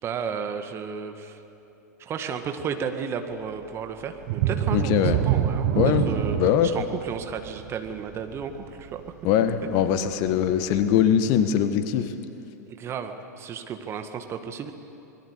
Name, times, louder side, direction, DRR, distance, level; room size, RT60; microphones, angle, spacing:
voice 1, 0.0-1.4 2.0-9.0 10.7-10.8 12.7-14.7, right 6 dB, 25° right, 6 dB, 1.9 m, -33 dB
sound 1, 4.2-9.7 10.1-10.3 10.8-10.9, right 11 dB, 50° right, 1.5 m, -26 dB
voice 2, 4.7-5.2 5.8-6.0 6.4-6.7 9.2-12.1, left 9 dB, 45° left, 10 dB, 1.4 m, -22 dB
26.5 x 20.5 x 8.3 m, 3.0 s
figure-of-eight pair, 95°, 9 cm